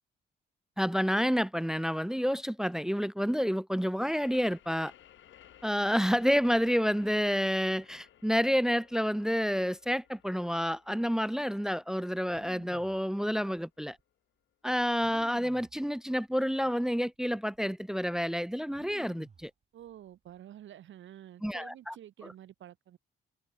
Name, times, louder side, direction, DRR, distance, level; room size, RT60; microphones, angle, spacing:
voice 1, 0.8-4.9 5.6-14.0 14.6-19.5 21.4-21.9, equal, 5° right, 0.7 m, -29 dB
sound 1, 4.2-13.6, left 11 dB, 75° left, 7.4 m, -59 dB
sound 2, 12.2-13.0 13.9-14.0 15.0-15.8 16.6-16.7 17.1-17.6 18.7-19.5 19.8-20.3, right 6 dB, 35° right, 1.9 m, -53 dB
voice 2, 19.7-23.0, right 11 dB, 75° right, 7.8 m, -49 dB
cardioid pair, 90°, 20 cm